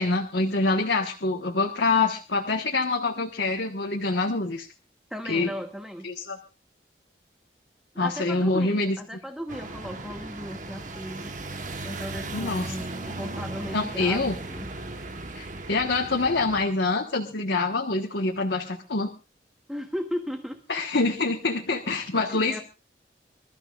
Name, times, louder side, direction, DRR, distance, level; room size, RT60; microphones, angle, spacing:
voice 1, 0.0-4.7 5.2-5.5 6.0-6.4 8.0-9.0 12.3-12.8 13.7-14.3 15.3-19.1 20.7-22.6, left 3 dB, 85° left, 2 dB, 1.5 m, -25 dB
voice 2, 5.1-6.1 7.9-11.3 11.8-14.7 19.7-20.6 22.3-22.6, equal, 5° right, 4 dB, 1.2 m, -36 dB
sound 1, 9.5-16.6, right 2 dB, 45° right, 1.2 m, -37 dB
26.5 x 13.5 x 2.5 m, 0.30 s
head